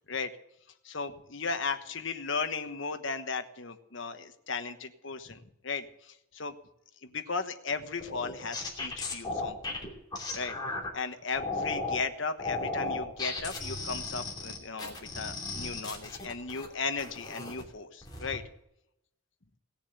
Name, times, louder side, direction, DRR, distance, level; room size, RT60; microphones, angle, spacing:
voice 1, 0.8-6.5 7.0-9.8 10.3-10.6 10.9-18.4, left 4 dB, 60° left, 8 dB, 1.2 m, -36 dB
sound 1, 8.0-10.9 11.4-12.0 12.4-16.7 17.0-17.6 18.0-18.4, left 3 dB, 20° left, 2.8 m, -35 dB
18.0 x 7.1 x 8.1 m, 0.81 s
head